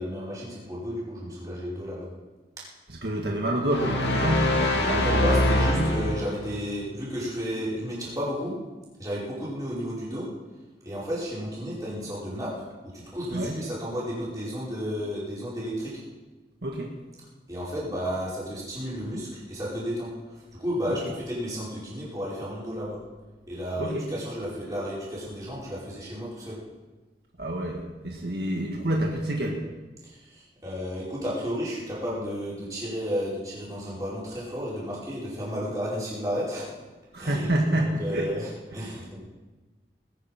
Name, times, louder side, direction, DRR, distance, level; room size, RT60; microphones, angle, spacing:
voice 1, 0.0-2.1 4.8-8.5 9.0-10.3 10.8-12.7 12.9-15.9 17.5-23.0 23.5-26.6 30.0-36.7 37.2-39.2, equal, 20° right, -7 dB, 5.2 m, -32 dB
voice 2, 2.9-5.9 13.3-13.6 16.6-16.9 20.9-21.0 23.8-24.1 27.4-29.6 37.1-38.3, right 1 dB, 70° right, 0 dB, 1.8 m, -28 dB
sound 1, 3.7-6.5, left 1 dB, 85° left, 2.5 m, -24 dB
20.5 x 9.2 x 5.9 m, 1.2 s
head